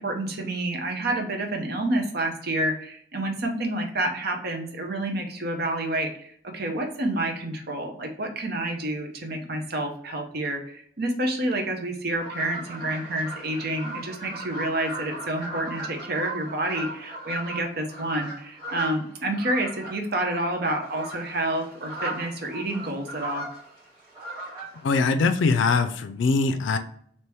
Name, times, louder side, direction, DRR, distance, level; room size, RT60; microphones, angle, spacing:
voice 1, 0.0-23.5, right 1 dB, 60° right, 4 dB, 0.8 m, -29 dB
sound 1, 12.2-24.8, right 2 dB, 20° right, 1.8 m, -37 dB
voice 2, 24.8-26.8, left 4 dB, 90° left, 9 dB, 0.4 m, -22 dB
3.4 x 2.9 x 4.4 m, 0.62 s
head